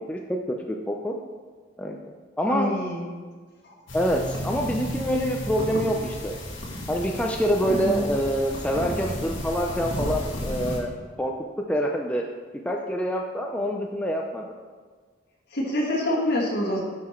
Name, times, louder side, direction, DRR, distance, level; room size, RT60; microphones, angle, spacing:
voice 1, 0.1-1.2 1.8-2.0 2.4-2.7 3.9-6.4 6.9-11.3 11.7-12.2 12.6-14.5, equal, 5° left, 0 dB, 0.5 m, -26 dB
voice 2, 2.5-3.0 3.6-3.7 7.7-8.0 15.5-16.8, left 1 dB, 60° left, -3 dB, 2.0 m, -26 dB
sound 1, 3.9-10.8, equal, 75° left, 1.5 m, -33 dB
9.3 x 5.7 x 4.4 m, 1.5 s
head